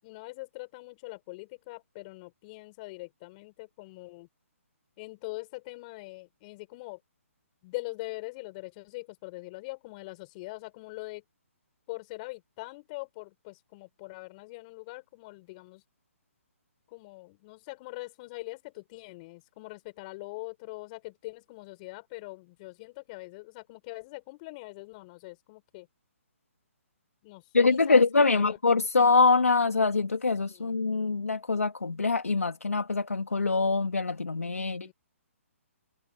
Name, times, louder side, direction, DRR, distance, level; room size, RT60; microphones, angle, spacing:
voice 1, 0.0-4.3 5.0-7.0 7.6-11.2 11.9-15.8 16.9-25.9 27.2-28.6 30.5-30.8 34.6-34.9, left 23 dB, 35° left, 6.4 m, -42 dB
voice 2, 27.5-34.9, left 4 dB, 90° left, 3.0 m, -24 dB
hypercardioid pair, 140°, 8 cm